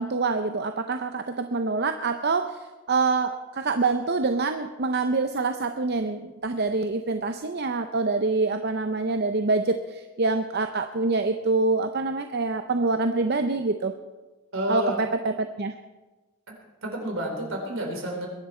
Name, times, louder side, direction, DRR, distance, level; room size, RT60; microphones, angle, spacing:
voice 1, 0.0-2.6 2.9-13.9 14.7-15.7, right 3 dB, 50° right, 7 dB, 0.6 m, -26 dB
voice 2, 14.5-15.0 16.5-16.6 16.8-18.3, right 1 dB, 75° right, 1 dB, 3.9 m, -30 dB
22.0 x 10.5 x 4.4 m, 1.2 s
head